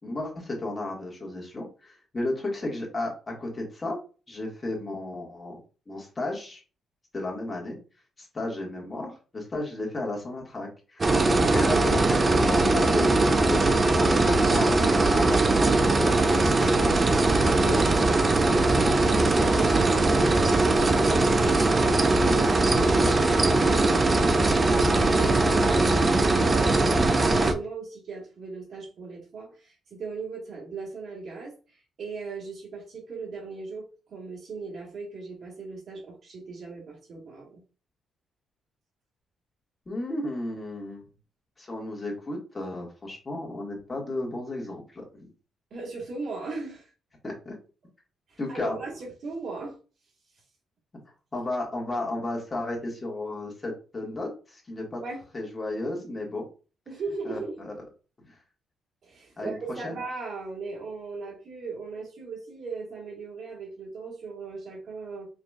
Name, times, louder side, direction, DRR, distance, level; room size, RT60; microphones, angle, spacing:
voice 1, 0.0-4.0 4.3-5.6 5.9-6.6 7.1-7.8 8.2-16.1 16.8-17.8 39.8-41.0 41.6-45.3 47.2-47.6 48.4-48.7 51.3-55.0 55.3-56.5 57.2-57.7 58.3-58.4 59.4-59.6 59.8-60.0, left 2 dB, 25° left, -1 dB, 1.7 m, -33 dB
sound 1, 11.0-27.5, right 2 dB, 30° right, 0.5 m, -21 dB
voice 2, 19.5-26.9 27.2-31.5 32.0-37.6 45.7-46.9 48.3-49.7 55.0-55.2 56.9-57.5 59.0-65.3, right 4 dB, 60° right, -4 dB, 1.9 m, -38 dB
4.9 x 2.9 x 2.4 m, 0.35 s
cardioid pair, 90°, 0 cm